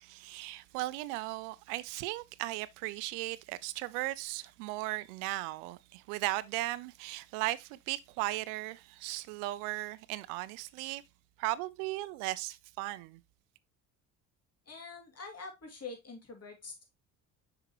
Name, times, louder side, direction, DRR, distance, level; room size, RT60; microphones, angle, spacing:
voice 1, 0.0-11.0 11.4-13.2, right 18 dB, 85° right, 0.6 m, -37 dB
voice 2, 14.7-16.8, left 4 dB, 35° left, 2.5 m, -45 dB
5.8 x 5.7 x 2.9 m
supercardioid pair, 65°, 42 cm